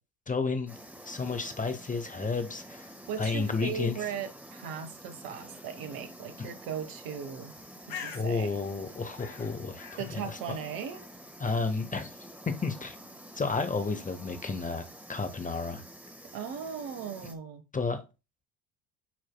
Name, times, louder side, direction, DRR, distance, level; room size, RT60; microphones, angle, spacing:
voice 1, 0.3-0.7 1.1-2.9 3.2-4.0 6.4-6.5 8.1-10.2 11.4-12.1 12.6-13.0 13.3-15.8 17.7-18.0, left 4 dB, 20° left, 1.0 m, -32 dB
sound 1, 0.7-17.4, equal, 5° right, 1.5 m, -49 dB
voice 2, 3.1-7.5 7.9-8.5 10.0-11.0 16.3-17.6, right 7 dB, 55° right, 1.3 m, -38 dB
Bird, 7.4-15.0, left 7 dB, 60° left, 1.5 m, -50 dB
10.0 x 4.6 x 2.2 m
hypercardioid pair, 65°, 41 cm